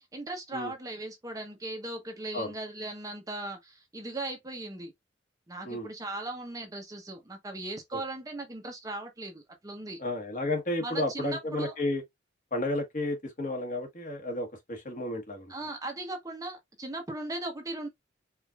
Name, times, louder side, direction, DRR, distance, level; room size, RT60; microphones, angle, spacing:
voice 1, 0.1-4.9 5.5-10.0 10.8-11.7 15.5-17.9, right 2 dB, 20° right, 0.7 m, -38 dB
voice 2, 10.0-12.0 12.5-15.5, left 1 dB, 45° left, 1.2 m, -32 dB
4.6 x 2.5 x 2.3 m
head